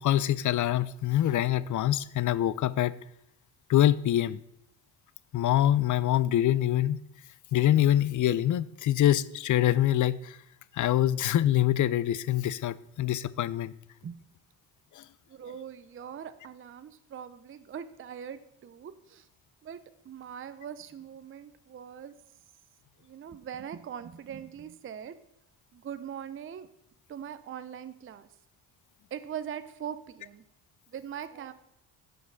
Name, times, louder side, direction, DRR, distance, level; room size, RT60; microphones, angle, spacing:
voice 1, 0.0-3.0 3.7-4.4 5.3-7.0 7.5-10.4 10.7-13.7 15.0-15.1, left 12 dB, 45° left, 0.4 m, -25 dB
voice 2, 15.3-19.3 19.6-22.1 23.0-25.2 25.7-26.7 27.1-28.3 29.1-30.4 30.9-31.5, right 8 dB, 30° right, 0.5 m, -41 dB
6.0 x 5.1 x 6.4 m
supercardioid pair, 55°, 46 cm